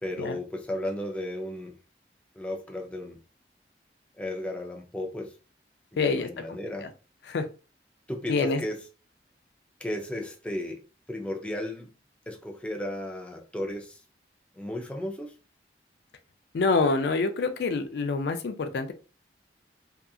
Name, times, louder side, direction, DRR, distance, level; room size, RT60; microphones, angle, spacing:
voice 1, 0.0-1.8 2.4-3.2 4.1-5.4 5.9-6.9 8.1-8.8 9.8-11.9 12.3-14.0 14.6-15.3, left 1 dB, 5° left, 0.4 m, -34 dB
voice 2, 6.0-6.9 7.3-7.5 8.3-8.6 16.5-18.9, left 4 dB, 75° left, 0.4 m, -27 dB
2.7 x 2.3 x 2.3 m
head